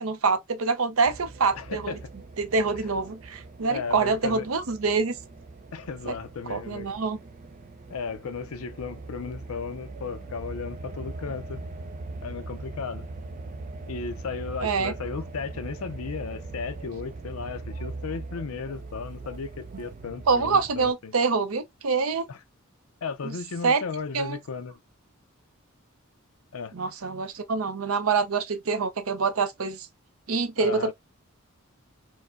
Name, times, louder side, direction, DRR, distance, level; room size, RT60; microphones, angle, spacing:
voice 1, 0.0-2.0 2.4-5.1 6.1-6.2 6.5-7.2 14.6-14.9 20.3-22.3 23.2-23.3 23.6-23.8 24.1-24.4 26.7-29.9 30.3-30.9, right 4 dB, 75° right, 0.7 m, -25 dB
sound 1, 1.0-20.9, right 3 dB, 40° right, 0.4 m, -41 dB
voice 2, 1.5-2.1 3.7-4.5 5.7-6.9 7.9-11.6 12.2-13.1 13.9-21.1 22.3-22.4 23.0-24.8 26.5-26.7 30.6-30.9, left 5 dB, 90° left, 0.5 m, -35 dB
4.6 x 2.1 x 2.5 m
head